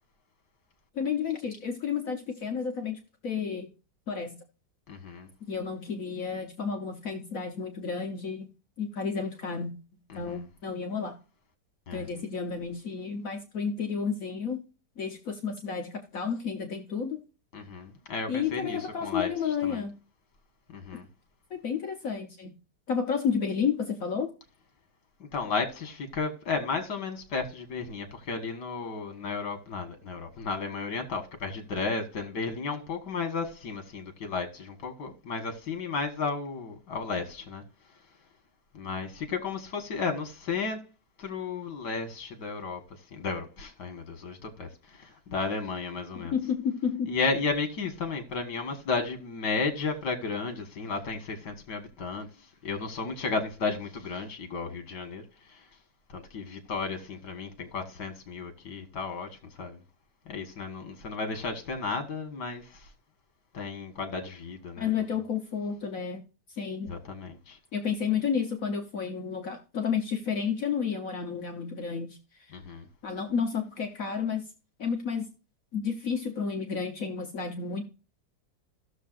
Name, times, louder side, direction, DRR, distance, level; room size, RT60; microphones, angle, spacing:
voice 1, 0.9-3.7 4.1-4.4 5.5-8.5 8.8-9.7 10.1-11.2 11.9-14.6 15.0-17.2 18.3-19.9 21.5-22.5 22.9-24.3 46.1-47.1 64.8-66.2 66.5-66.9 67.7-72.2 73.0-74.4 74.8-75.3 75.7-77.8, left 6 dB, 60° left, 1.4 m, -31 dB
voice 2, 4.9-5.3 10.3-10.4 11.9-12.1 17.5-19.3 19.6-19.8 20.7-21.1 25.3-37.6 38.7-40.8 41.2-42.8 43.1-46.4 47.1-52.3 52.6-55.2 56.1-59.3 59.6-59.8 60.3-62.6 63.5-64.9 66.9-67.6 72.5-72.9, left 4 dB, 85° left, 2.1 m, -33 dB
16.0 x 6.7 x 2.5 m
omnidirectional pair, 1.8 m